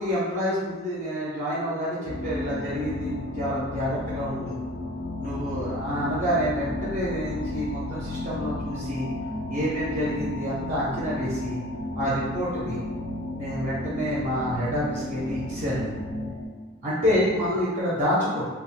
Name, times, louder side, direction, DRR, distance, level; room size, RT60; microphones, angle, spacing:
voice 1, 0.0-4.6 5.2-9.1 9.5-11.6 12.0-12.8 13.4-15.9 16.8-18.4, equal, 35° right, -8 dB, 0.5 m, -28 dB
sound 1, 2.1-16.5, left 1 dB, 50° left, 0.3 m, -33 dB
2.3 x 2.0 x 3.6 m, 1.4 s
head